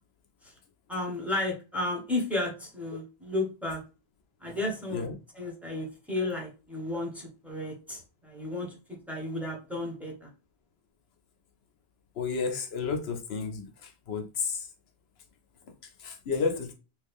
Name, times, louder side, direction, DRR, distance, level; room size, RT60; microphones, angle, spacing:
voice 1, 0.9-3.8 4.4-5.1 5.3-10.3, left 2 dB, ahead, 0.9 m, -33 dB
voice 2, 12.2-14.7 16.0-16.7, left 5 dB, 70° left, 0.9 m, -31 dB
3.1 x 2.3 x 3.4 m
omnidirectional pair, 1.1 m